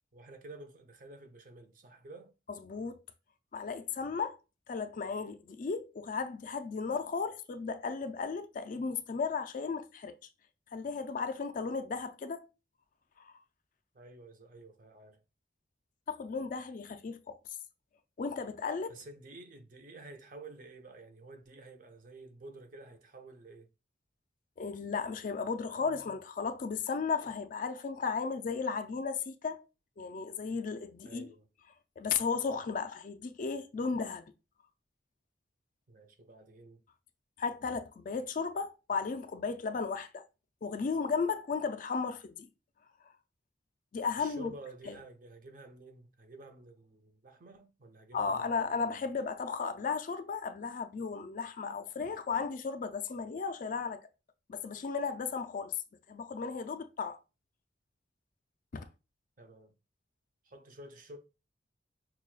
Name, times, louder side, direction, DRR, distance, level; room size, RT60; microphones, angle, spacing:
voice 1, 0.1-2.3 13.9-15.2 18.9-23.7 31.0-31.5 35.9-36.8 44.2-48.9 59.4-59.7 60.4-61.2, right 2 dB, 45° right, 0.6 m, -51 dB
voice 2, 2.6-3.0 3.5-4.4 4.7-10.1 10.7-12.5 13.2-13.3 16.1-17.4 18.2-19.0 24.6-29.6 30.0-31.3 32.0-34.2 37.4-40.2 40.6-42.5 43.9-44.5 44.9-45.0 48.1-54.0 54.5-55.8 56.1-57.2 58.7-58.9, left 5 dB, 45° left, 0.3 m, -35 dB
6.0 x 2.3 x 2.3 m
head